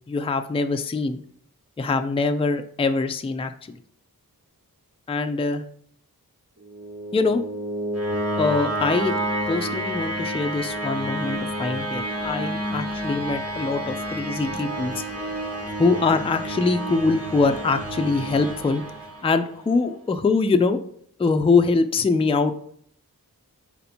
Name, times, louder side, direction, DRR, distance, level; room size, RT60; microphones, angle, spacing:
voice 1, 0.1-1.2 1.8-3.5 5.1-5.6 7.1-7.4 8.4-9.1 9.5-15.0 15.8-18.8 19.2-20.8 21.2-22.5, left 4 dB, 15° left, 8 dB, 0.3 m, -23 dB
sound 1, 6.6-19.6, right 1 dB, 40° right, 1.0 m, -30 dB
4.3 x 2.8 x 4.2 m, 0.64 s
wide cardioid pair, 60°, 36 cm